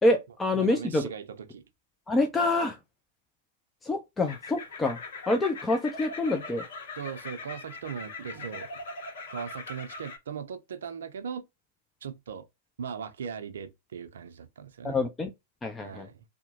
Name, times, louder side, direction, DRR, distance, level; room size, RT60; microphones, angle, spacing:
voice 1, 0.0-1.0 2.1-2.8 3.8-5.0 5.3-6.6 14.8-15.3 15.6-16.1, left 2 dB, 15° left, 0.4 m, -26 dB
voice 2, 0.5-1.6 7.0-8.7 9.3-11.4 12.0-12.5 12.8-15.0 15.8-16.2, right 7 dB, 75° right, 0.5 m, -39 dB
sound 1, 4.2-10.2, left 3 dB, 70° left, 0.9 m, -41 dB
2.8 x 2.1 x 2.8 m
hypercardioid pair, 105°, 0 cm